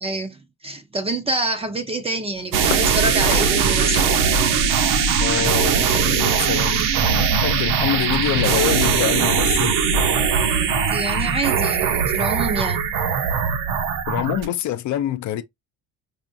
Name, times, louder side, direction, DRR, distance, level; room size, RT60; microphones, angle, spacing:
voice 1, 0.0-4.2 10.9-12.8, right 2 dB, 15° right, 0.5 m, -27 dB
sound 1, 2.3-9.3, left 8 dB, 90° left, 0.8 m, -35 dB
sound 2, 2.5-14.4, right 6 dB, 60° right, 0.9 m, -20 dB
voice 2, 5.2-9.8 14.1-15.4, left 12 dB, 50° left, 0.5 m, -25 dB
4.8 x 2.4 x 2.6 m
cardioid pair, 140°, 36 cm